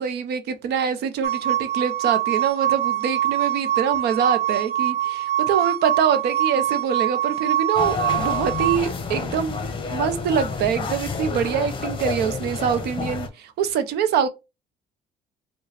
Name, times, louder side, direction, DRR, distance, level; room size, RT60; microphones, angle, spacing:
voice 1, 0.0-9.6 9.9-14.3, right 7 dB, 75° right, 0.7 m, -24 dB
sound 1, 1.2-8.8, right 12 dB, 40° right, 0.7 m, -24 dB
sound 2, 7.8-13.3, left 4 dB, 30° left, 1.0 m, -29 dB
4.7 x 2.3 x 3.2 m
cardioid pair, 110°, 17 cm